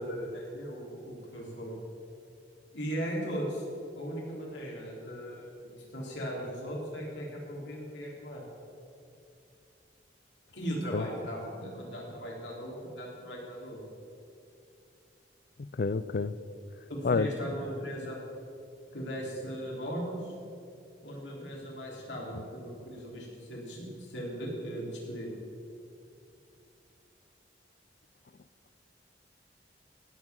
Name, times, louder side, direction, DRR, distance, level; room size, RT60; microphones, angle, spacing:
voice 1, 0.0-1.7 2.7-3.6 3.9-8.4 10.5-13.8 16.9-18.2 18.9-20.3 21.0-25.3, equal, 90° left, -3 dB, 3.8 m, -38 dB
voice 2, 15.6-16.3 17.0-17.3, left 4 dB, 55° left, 16 dB, 0.4 m, -28 dB
16.5 x 6.1 x 7.2 m, 2.5 s
head